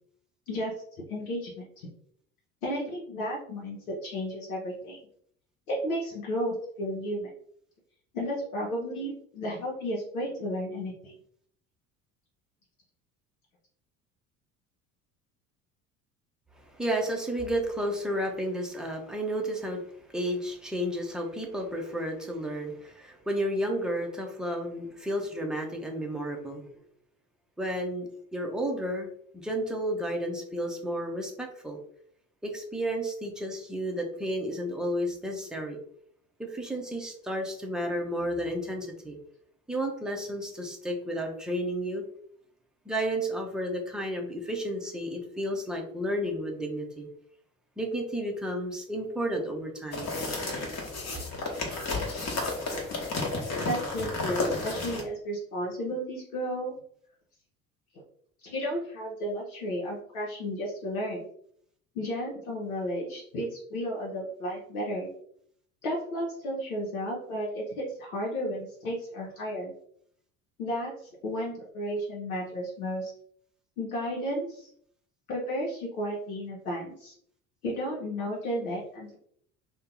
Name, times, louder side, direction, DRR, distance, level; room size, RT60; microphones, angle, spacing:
voice 1, 1.1-1.9 2.6-5.0 5.7-7.3 8.1-11.1 53.6-56.7 58.4-61.3 61.9-65.1 65.8-69.7 70.6-70.9 71.2-73.1 73.8-74.7 75.3-77.1 77.6-79.2, equal, 75° left, -3 dB, 0.8 m, -33 dB
voice 2, 16.6-19.8 20.1-26.7 27.6-29.1 29.3-31.8 32.4-35.8 36.4-39.2 39.7-42.0 42.9-47.1 47.8-50.1, equal, ahead, 1 dB, 0.6 m, -32 dB
sound 1, 49.9-55.0, left 3 dB, 40° left, 1.1 m, -32 dB
2.6 x 2.2 x 3.7 m, 0.65 s
figure-of-eight pair, 60°, 43 cm